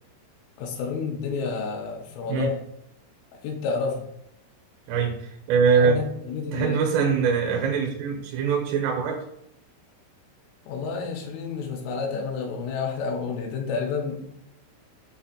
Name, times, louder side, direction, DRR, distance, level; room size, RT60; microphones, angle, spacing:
voice 1, 0.6-2.6 3.4-4.1 5.7-6.8 10.7-14.3, left 5 dB, 85° left, 0 dB, 3.2 m, -30 dB
voice 2, 4.9-6.0 6.5-9.2, right 6 dB, 85° right, 0 dB, 3.3 m, -23 dB
7.4 x 2.5 x 2.7 m, 0.77 s
omnidirectional pair, 5.8 m